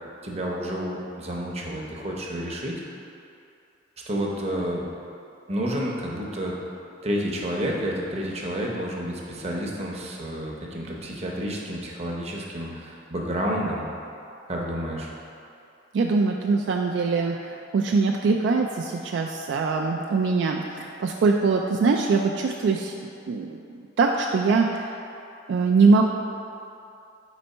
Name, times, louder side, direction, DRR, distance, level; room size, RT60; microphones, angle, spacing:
voice 1, 0.2-2.7 4.1-4.8 5.5-6.5 7.0-13.8 14.5-15.1, equal, 35° right, -2 dB, 0.7 m, -30 dB
voice 2, 15.9-23.0 23.3-24.9 25.5-26.0, right 4 dB, 65° right, 1 dB, 0.3 m, -22 dB
4.3 x 4.1 x 5.4 m, 2.6 s
head